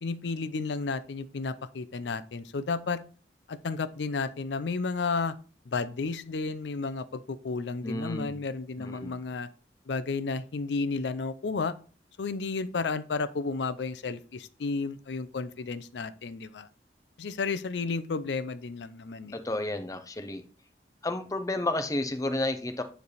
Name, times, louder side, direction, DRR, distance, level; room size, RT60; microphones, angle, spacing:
voice 1, 0.0-3.0 3.5-5.3 5.7-9.5 9.9-11.7 12.2-16.7 17.2-19.4, left 4 dB, 80° left, 14 dB, 0.5 m, -32 dB
voice 2, 7.8-8.3 8.8-9.1 19.3-20.4 21.0-22.8, left 2 dB, 20° left, 8 dB, 0.7 m, -31 dB
9.3 x 3.3 x 4.1 m, 0.39 s
head